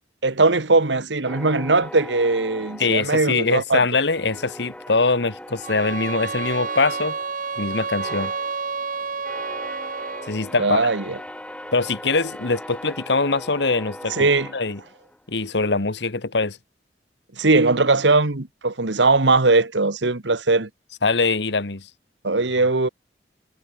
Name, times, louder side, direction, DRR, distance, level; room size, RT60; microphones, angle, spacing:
voice 1, 0.2-3.8 10.6-11.2 14.1-14.5 17.4-20.7 22.2-22.9, right 3 dB, 80° right, 1.6 m, -19 dB
sound 1, 1.3-3.7 4.1-15.3, left 1 dB, 5° left, 3.1 m, -40 dB
voice 2, 2.8-7.2 7.6-8.3 10.3-10.8 11.7-14.3 14.5-14.8 15.3-16.6 21.0-21.9, left 3 dB, 70° left, 1.5 m, -23 dB
sound 2, 5.6-10.4, right 5 dB, 50° right, 1.9 m, -30 dB
head